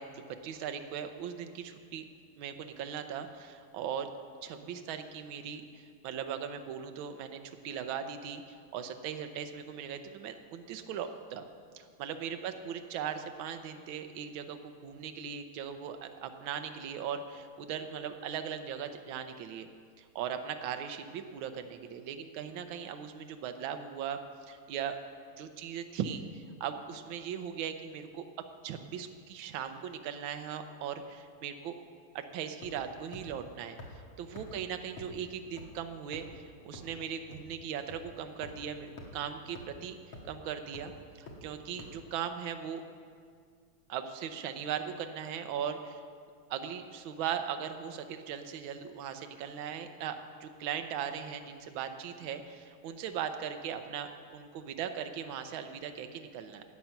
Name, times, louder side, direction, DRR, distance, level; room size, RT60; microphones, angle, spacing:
voice 1, 0.0-2.0 2.4-4.1 4.4-11.4 11.7-19.7 20.0-24.2 24.5-25.0 25.4-28.3 28.6-31.8 32.1-33.8 34.2-40.0 40.2-40.9 41.2-42.8 43.9-46.0 46.5-56.6, right 8 dB, 70° right, 7 dB, 1.5 m, -39 dB
sound 1, 32.6-32.9 33.1-33.2 33.8-33.9 34.3-34.4 35.0-35.1 35.6-35.7 36.1-36.3 36.7-36.8 37.3-37.4 37.9-38.0 38.4-38.5 39.0-39.1 39.5-39.6 40.1-40.3 40.7-40.8 41.3-41.4 41.8-41.9, left 2 dB, 70° left, 2.4 m, -45 dB
13.5 x 8.8 x 5.8 m, 2.1 s
omnidirectional pair, 2.4 m